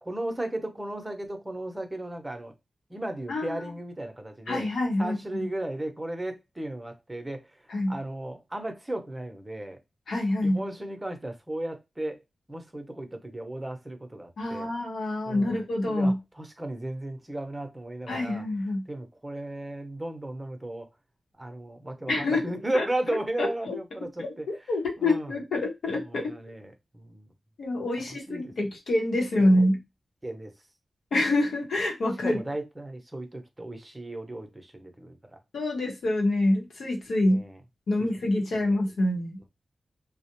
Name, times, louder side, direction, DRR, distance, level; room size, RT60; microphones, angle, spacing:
voice 1, 0.0-2.5 2.9-4.6 5.0-7.6 7.9-9.8 10.4-12.2 12.5-14.7 15.3-18.4 18.9-20.9 21.4-24.5 25.0-25.3 26.0-27.3 28.3-28.5 29.4-29.5 30.2-30.5 32.2-35.4 37.2-37.6 38.0-38.8, right 1 dB, 25° right, 0.7 m, -35 dB
voice 2, 3.3-3.7 4.5-5.5 7.7-8.0 10.1-10.6 14.4-16.2 18.1-18.8 22.1-22.9 23.4-23.8 24.2-26.3 27.6-29.8 31.1-32.4 35.5-37.4 37.9-39.4, left 1 dB, 80° left, 0.9 m, -26 dB
2.3 x 2.1 x 2.9 m
cardioid pair, 40°, 0 cm